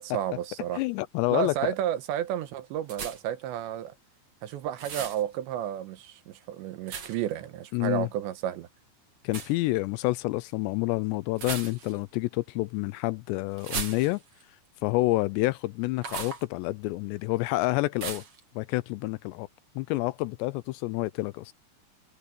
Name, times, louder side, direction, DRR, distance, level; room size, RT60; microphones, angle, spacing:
voice 1, 0.0-0.8 1.3-3.9 4.4-8.7, right 11 dB, 75° right, 3.3 m, -32 dB
voice 2, 0.7-1.7 7.7-8.1 9.2-14.2 14.8-18.2 18.6-19.5 19.8-21.5, left 20 dB, 85° left, 2.6 m, -28 dB
sound 1, 2.9-3.4 4.8-5.2 6.9-7.3 9.3-9.5 11.3-12.1 13.6-14.4 16.0-16.4 18.0-18.4, right 6 dB, 40° right, 2.3 m, -36 dB
omnidirectional pair, 5.2 m